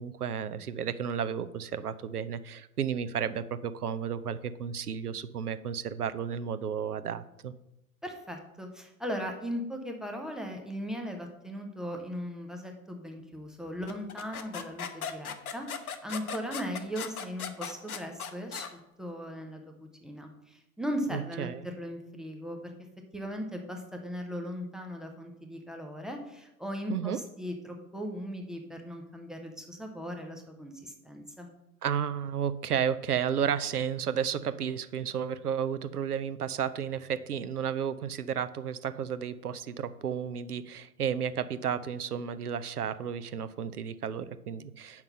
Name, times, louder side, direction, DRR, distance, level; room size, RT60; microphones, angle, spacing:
voice 1, 0.0-7.5 21.1-21.6 26.9-27.2 31.8-45.0, right 8 dB, 75° right, 13 dB, 0.7 m, -32 dB
voice 2, 8.0-22.7 23.1-31.5, equal, ahead, 3 dB, 0.4 m, -38 dB
sound 1, 13.9-18.7, left 7 dB, 70° left, 1.0 m, -38 dB
7.6 x 5.9 x 5.5 m, 0.86 s
figure-of-eight pair, 95°, 45 cm